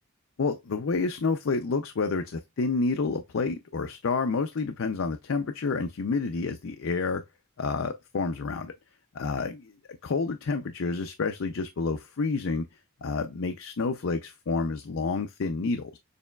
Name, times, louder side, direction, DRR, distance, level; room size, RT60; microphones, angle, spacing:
voice 1, 0.4-7.2 7.6-8.7 9.1-9.7 10.0-12.7 13.0-16.0, left 4 dB, 60° left, 0.5 m, -29 dB
6.8 x 3.0 x 2.3 m
head